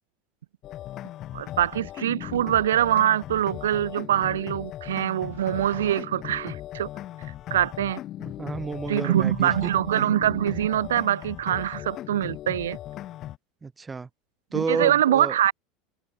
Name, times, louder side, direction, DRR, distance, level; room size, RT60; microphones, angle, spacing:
sound 1, 0.6-13.4, left 13 dB, 45° left, 1.2 m, -38 dB
voice 1, 1.3-6.9 7.5-8.0 8.9-12.8 14.5-15.5, right 11 dB, 85° right, 0.3 m, -24 dB
voice 2, 8.2-9.7 13.6-14.1 14.5-15.4, right 4 dB, 20° right, 2.1 m, -30 dB
hypercardioid pair, 90°, 0 cm